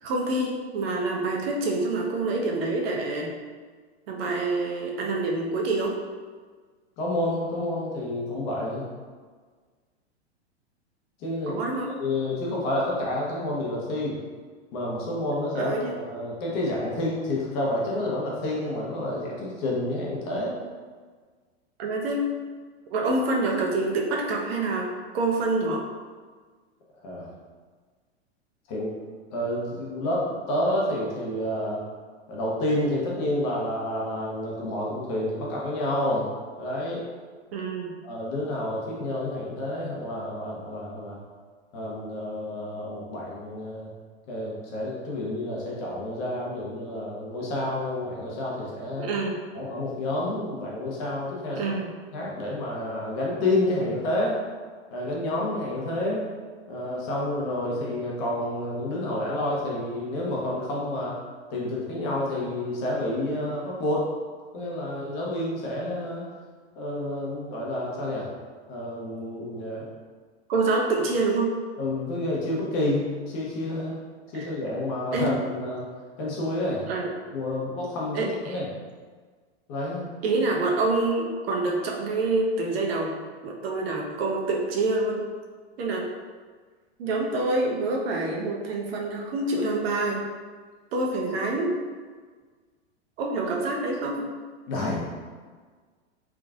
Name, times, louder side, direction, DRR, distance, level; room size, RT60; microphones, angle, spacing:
voice 1, 0.0-3.3 4.1-6.0 11.5-11.9 15.5-15.9 21.8-22.3 22.9-24.9 25.1-25.8 37.5-37.9 49.0-49.4 51.6-51.9 70.5-71.5 74.3-74.5 75.1-75.5 76.9-77.1 78.1-78.6 80.2-83.1 83.4-85.2 85.8-86.1 87.0-90.2 90.9-91.7 93.2-94.3, right 2 dB, 65° right, -1 dB, 0.8 m, -26 dB
voice 2, 7.0-8.9 11.2-11.6 12.0-14.2 14.7-20.5 27.0-27.3 28.7-28.9 29.3-31.8 32.3-36.3 36.6-37.0 38.0-41.2 41.7-43.9 44.3-49.1 49.5-51.7 52.1-54.4 54.9-56.2 56.7-61.2 61.5-64.1 64.5-66.3 66.8-68.3 68.7-69.9 71.8-74.0 74.3-75.9 76.2-76.9 77.3-78.7 79.7-80.1 94.7-95.0, left 1 dB, 45° left, -4 dB, 1.1 m, -29 dB
3.5 x 3.0 x 2.4 m, 1.5 s
hypercardioid pair, 120°, 33 cm